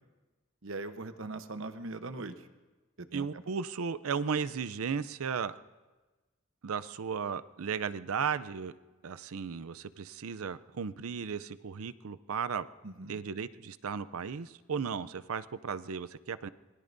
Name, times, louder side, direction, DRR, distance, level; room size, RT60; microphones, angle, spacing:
voice 1, 0.6-2.5 3.0-3.4 12.8-13.2, right 2 dB, 65° right, 9 dB, 1.0 m, -41 dB
voice 2, 3.1-5.5 6.6-8.7 9.0-12.7 13.1-16.5, right 6 dB, 80° right, 15 dB, 0.5 m, -35 dB
26.0 x 20.5 x 2.7 m, 1.2 s
head